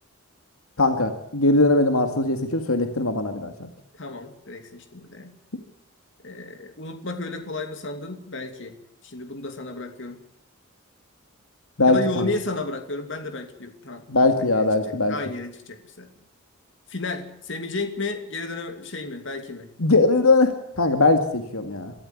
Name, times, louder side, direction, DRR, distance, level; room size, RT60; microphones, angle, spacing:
voice 1, 0.8-3.5 11.8-12.3 14.1-15.1 19.8-21.9, left 2 dB, 80° left, 7 dB, 2.1 m, -20 dB
voice 2, 4.0-5.4 6.2-8.8 9.0-10.2 11.9-14.0 14.4-16.1 16.9-19.7, left 2 dB, 55° left, 7 dB, 2.8 m, -33 dB
24.0 x 14.0 x 9.6 m, 0.76 s
head